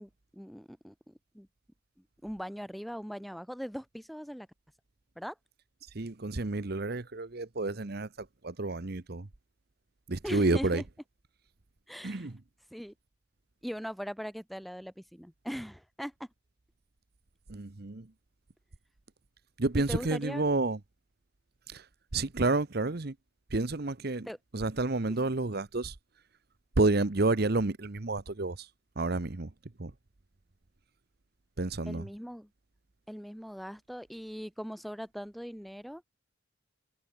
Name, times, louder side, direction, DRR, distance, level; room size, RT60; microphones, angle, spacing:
voice 1, 0.0-1.5 2.2-4.5 5.2-5.4 10.2-10.8 11.9-12.3 12.7-12.9 13.6-16.3 19.8-20.5 24.3-24.4 31.9-32.5 33.1-36.0, equal, ahead, 7.2 m, -40 dB
voice 2, 5.9-9.3 10.1-10.8 12.0-12.3 17.5-18.1 19.6-20.8 21.7-21.9 22.1-23.1 23.5-24.3 24.5-26.0 26.8-28.7 29.0-29.5 29.8-29.9 31.6-32.0, right 2 dB, 50° right, 1.0 m, -30 dB
head